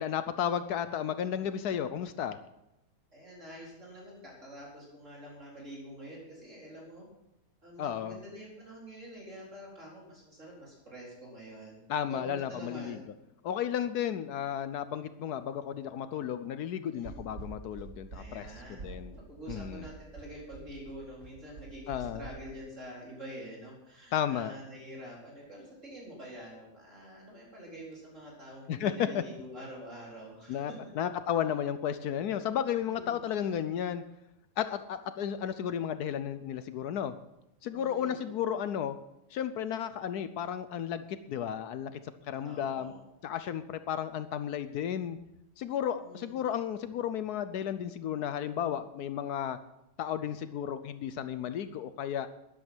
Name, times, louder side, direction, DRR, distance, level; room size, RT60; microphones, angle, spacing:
voice 1, 0.0-2.4 7.8-8.2 11.9-13.0 13.4-19.1 19.5-19.9 21.9-22.2 24.1-24.5 28.7-29.2 30.5-34.0 34.6-37.1 37.6-39.0 39.3-42.0 42.3-42.9 43.2-45.2 45.6-49.6 50.0-52.3, left 9 dB, 75° left, 12 dB, 1.2 m, -33 dB
voice 2, 3.1-7.1 7.6-11.8 12.1-13.0 16.9-17.2 18.1-31.0 32.8-33.2 37.7-38.3 42.4-43.0 46.0-46.4, right 1 dB, 45° right, -4 dB, 4.6 m, -47 dB
sound 1, 17.0-22.3, right 4 dB, 75° right, 3.5 m, -46 dB
13.0 x 11.0 x 6.1 m, 0.86 s
omnidirectional pair, 1.7 m